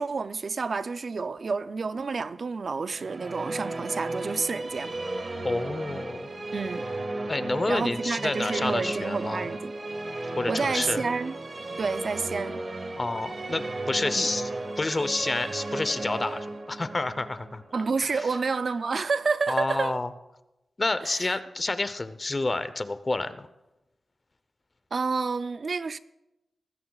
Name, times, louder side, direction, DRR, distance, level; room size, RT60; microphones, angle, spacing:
voice 1, 0.0-5.0 6.5-6.8 7.7-9.7 10.5-11.4 11.8-12.6 14.1-14.3 17.7-20.0 21.0-21.4 24.9-26.0, right 4 dB, 60° right, 0.5 m, -29 dB
Musical instrument, 2.9-18.3, right 2 dB, 45° right, 1.7 m, -34 dB
voice 2, 5.4-6.3 7.3-9.5 10.4-11.0 13.0-14.5 14.8-17.6 19.5-20.1 20.8-23.5, left 2 dB, 35° left, 0.8 m, -29 dB
19.5 x 15.5 x 2.4 m
wide cardioid pair, 80°, 0 cm